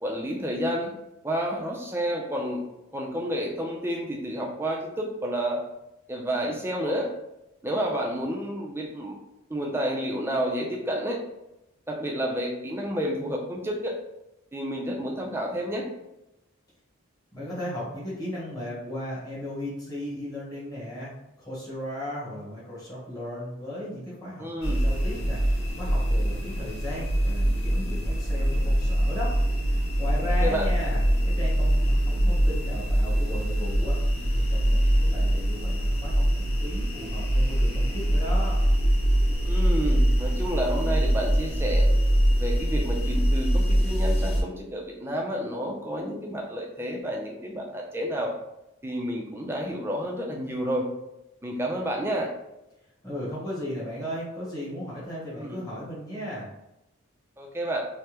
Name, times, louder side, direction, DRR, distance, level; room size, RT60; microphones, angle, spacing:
voice 1, 0.0-0.9 1.2-2.6 2.9-5.6 6.1-7.1 7.6-9.1 9.5-11.2 11.9-13.9 14.5-15.8 24.4-24.8 30.4-30.7 39.4-41.8 42.3-48.3 48.8-50.8 51.4-52.3 55.3-55.5 57.4-57.8, equal, 10° right, 0 dB, 0.4 m, -30 dB
voice 2, 17.3-29.3 29.6-38.6 53.0-56.5, left 1 dB, 15° left, -8 dB, 1.0 m, -36 dB
sound 1, 24.6-44.4, equal, 85° left, 0.8 m, -23 dB
3.3 x 2.1 x 2.9 m, 0.91 s
head